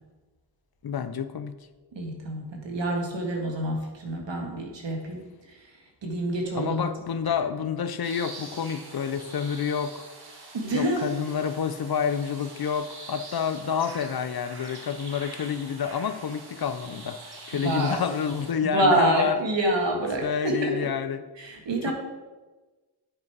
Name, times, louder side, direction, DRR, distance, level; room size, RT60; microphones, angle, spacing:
voice 1, 0.8-1.5 6.6-10.0 10.7-19.3 20.2-21.2 21.9-22.0, left 7 dB, 55° left, 12 dB, 0.6 m, -29 dB
voice 2, 1.9-6.9 10.5-11.1 17.6-18.0 18.6-20.8 21.4-21.9, right 1 dB, 80° right, 1 dB, 1.8 m, -27 dB
sound 1, 8.0-18.5, right 3 dB, 60° right, 1.8 m, -44 dB
9.7 x 5.2 x 4.7 m, 1.2 s
cardioid pair, 60°, 44 cm